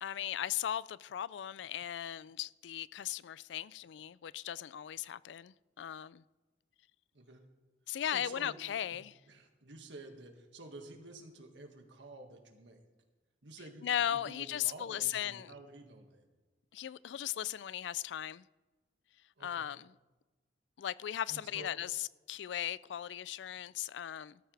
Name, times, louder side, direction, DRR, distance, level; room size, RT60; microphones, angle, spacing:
voice 1, 0.0-6.2 7.9-9.1 13.8-15.5 16.7-18.4 19.4-19.9 20.8-24.4, left 10 dB, 75° left, 0.3 m, -37 dB
voice 2, 7.1-7.5 8.1-8.6 8.9-9.0 9.3-12.8 13.4-16.3 19.4-19.7 21.3-21.7, right 2 dB, 85° right, 1.9 m, -51 dB
17.5 x 13.5 x 3.4 m
head